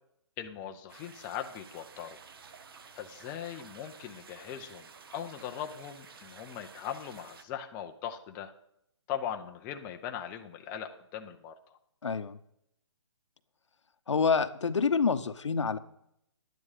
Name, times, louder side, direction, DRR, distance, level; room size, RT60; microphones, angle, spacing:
voice 1, 0.4-2.2 2.9-8.5 9.1-11.5, left 9 dB, 10° left, 4 dB, 0.5 m, -40 dB
sound 1, 0.9-7.4, right 5 dB, 50° right, 1.1 m, -52 dB
voice 2, 12.0-12.4 14.1-15.8, left 5 dB, 85° left, 10 dB, 1.0 m, -27 dB
11.5 x 9.5 x 4.9 m, 0.76 s
hypercardioid pair, 165°, 15 cm